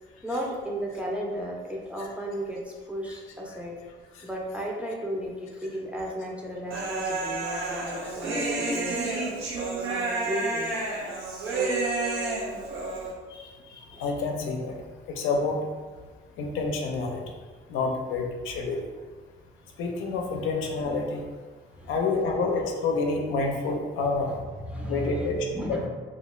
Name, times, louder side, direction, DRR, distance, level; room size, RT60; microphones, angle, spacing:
voice 1, 0.2-3.8 4.2-9.1 9.8-10.7 13.9-14.0 21.7-21.9 24.7-25.9, equal, 5° right, -2 dB, 0.5 m, -34 dB
Human voice, 6.7-13.1, right 3 dB, 90° right, 0.5 m, -30 dB
voice 2, 13.3-14.8 15.1-15.7 16.4-17.2 17.7-18.9 19.8-21.3 21.9-24.3 24.9-25.9, left 3 dB, 80° left, 2 dB, 0.4 m, -28 dB
2.3 x 2.2 x 3.0 m, 1.4 s
cardioid pair, 90°, 20 cm